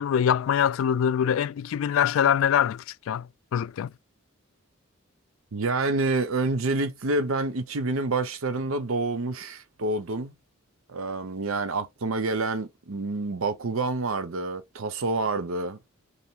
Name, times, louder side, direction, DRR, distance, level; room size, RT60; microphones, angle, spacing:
voice 1, 0.0-3.9, left 8 dB, 75° left, 0.3 m, -24 dB
voice 2, 5.5-10.3 10.9-15.8, right 3 dB, 85° right, 0.7 m, -28 dB
5.6 x 2.0 x 4.5 m
head